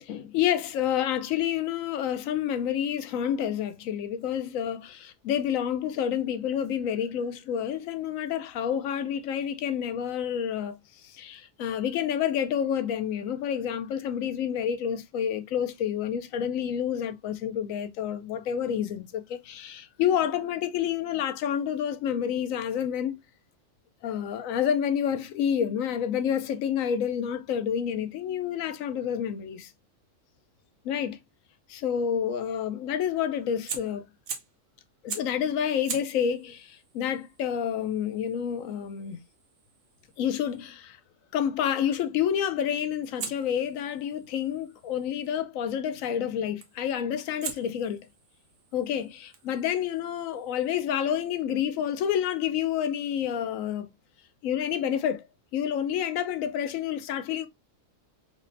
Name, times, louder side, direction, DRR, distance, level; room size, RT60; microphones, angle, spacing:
voice 1, 0.0-23.2 24.0-29.7 30.8-31.2 31.7-34.0 35.0-39.2 40.2-41.0 41.3-48.0 48.7-53.9 54.4-55.3 55.5-57.5, left 9 dB, 90° left, 1.0 m, -29 dB
Fire, 33.7-34.6 35.1-35.4 35.8-40.7 43.2-45.3 46.6-46.9 47.4-50.8, right 6 dB, 70° right, 1.1 m, -43 dB
4.9 x 2.1 x 2.5 m
omnidirectional pair, 1.3 m